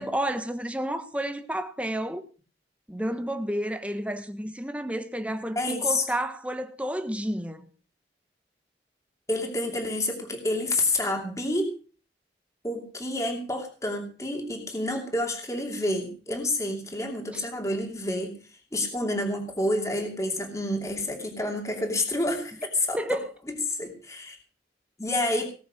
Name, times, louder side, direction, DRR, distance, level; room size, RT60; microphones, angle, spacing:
voice 1, 0.0-2.3 2.9-7.7 17.3-17.5 23.0-23.2, right 1 dB, 10° right, 1.3 m, -31 dB
voice 2, 5.6-6.1 9.3-11.7 12.6-18.3 18.7-23.2 23.5-24.4 25.0-25.4, left 1 dB, 20° left, 2.7 m, -29 dB
18.5 x 7.1 x 6.5 m
head